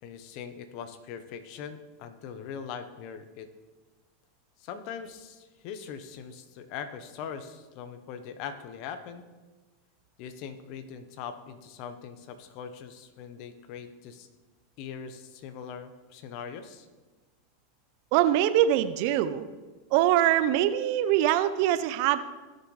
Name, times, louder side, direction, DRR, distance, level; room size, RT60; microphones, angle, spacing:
voice 1, 0.0-3.5 4.6-9.2 10.2-14.3 14.8-16.9, left 7 dB, 55° left, 10 dB, 1.0 m, -41 dB
voice 2, 18.1-19.4 19.9-22.2, right 12 dB, 60° right, 12 dB, 0.6 m, -23 dB
16.5 x 6.8 x 3.2 m, 1.3 s
hypercardioid pair, 105°, 0 cm